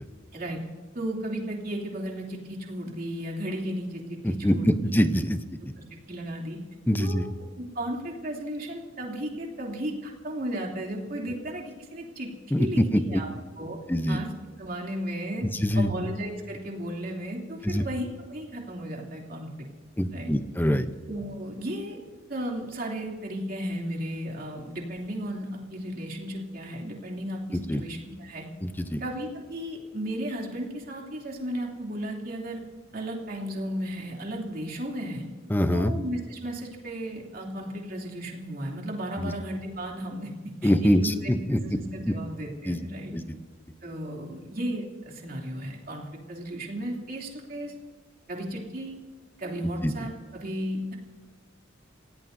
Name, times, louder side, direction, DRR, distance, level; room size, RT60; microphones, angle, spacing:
voice 1, 0.9-4.9 5.8-6.6 7.0-7.2 7.6-12.3 12.6-13.3 13.6-13.8 14.1-14.3 14.6-15.5 15.7-19.7 20.1-20.3 21.1-22.0 22.3-28.5 29.0-32.6 32.9-35.3 35.7-40.3 40.6-43.1 43.8-47.7 48.3-49.0 49.4-51.0, right 1 dB, 50° right, -1 dB, 2.9 m, -34 dB
voice 2, 4.2-5.4 6.9-7.2 12.5-13.2 13.9-14.2 15.6-15.9 17.6-17.8 20.0-20.9 27.5-27.8 28.6-29.0 35.5-35.9 39.2-39.3 40.6-41.6 42.7-42.8 43.1-43.2 49.8-49.9, equal, 10° left, 10 dB, 0.7 m, -24 dB
28.0 x 16.5 x 2.7 m, 1.5 s
head